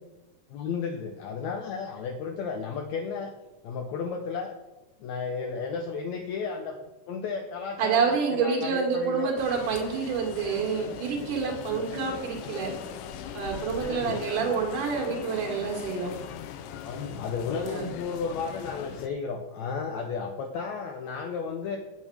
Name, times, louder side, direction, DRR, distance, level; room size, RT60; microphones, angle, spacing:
voice 1, 0.5-3.3 3.6-4.5 5.0-6.8 7.1-9.3 13.7-14.2 16.8-21.8, left 5 dB, 70° left, 3 dB, 1.9 m, -33 dB
voice 2, 7.8-12.7 13.3-16.1 17.6-17.9, right 6 dB, 80° right, 0 dB, 3.3 m, -28 dB
sound 1, 9.4-19.1, left 8 dB, 90° left, 2.3 m, -40 dB
8.7 x 7.1 x 6.2 m, 1.0 s
omnidirectional pair, 3.7 m